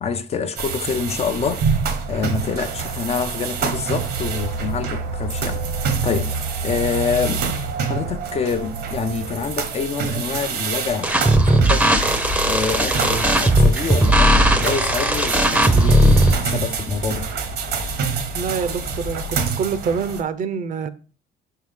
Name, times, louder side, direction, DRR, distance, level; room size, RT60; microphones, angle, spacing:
voice 1, 0.0-1.6 2.1-5.6 6.0-7.5 7.9-11.1 11.5-11.9 12.4-17.3, left 6 dB, 40° left, 0.6 m, -26 dB
sound 1, 0.6-20.2, right 6 dB, 75° right, 1.1 m, -27 dB
sound 2, 11.0-16.3, right 1 dB, 5° right, 0.7 m, -17 dB
sound 3, 11.9-19.5, left 3 dB, 60° left, 1.1 m, -33 dB
voice 2, 18.3-20.9, right 6 dB, 50° right, 0.6 m, -26 dB
5.6 x 4.6 x 3.6 m
cardioid pair, 110°, 17 cm